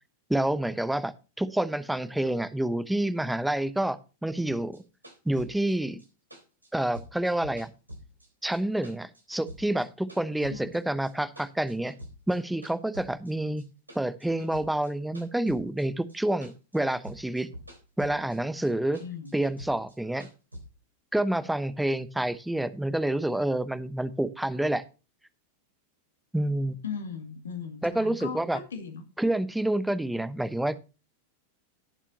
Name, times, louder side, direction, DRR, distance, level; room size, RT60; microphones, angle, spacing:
voice 1, 0.3-1.1 1.4-4.8 5.2-6.0 6.7-7.7 8.4-11.9 12.3-13.6 13.9-17.5 18.0-19.0 19.3-20.3 21.1-24.8 26.3-26.8 27.8-28.6 29.2-30.8, right 1 dB, 5° right, 15 dB, 1.0 m, -28 dB
sound 1, 4.5-8.6 8.8-10.8 11.0-12.4 12.6-16.2 16.4-18.4 18.6-20.6, equal, 85° right, 3.7 m, -46 dB
voice 2, 19.0-19.3 26.8-29.0, left 6 dB, 70° left, 6 dB, 2.4 m, -38 dB
17.5 x 7.4 x 2.8 m, 0.32 s
figure-of-eight pair, 90°, 0 cm